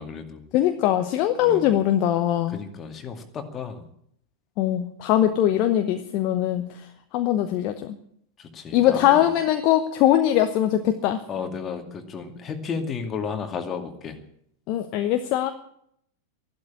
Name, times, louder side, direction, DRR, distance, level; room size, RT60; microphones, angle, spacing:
voice 1, 0.0-0.5 1.4-1.7 2.5-3.9 8.4-9.3 11.3-14.2, left 5 dB, 25° left, 6 dB, 2.3 m, -33 dB
voice 2, 0.5-2.6 4.6-6.9 7.1-8.0 8.7-11.2 14.7-15.5, left 12 dB, 40° left, 7 dB, 1.0 m, -21 dB
13.5 x 12.0 x 8.7 m, 0.70 s
figure-of-eight pair, 90°, 0 cm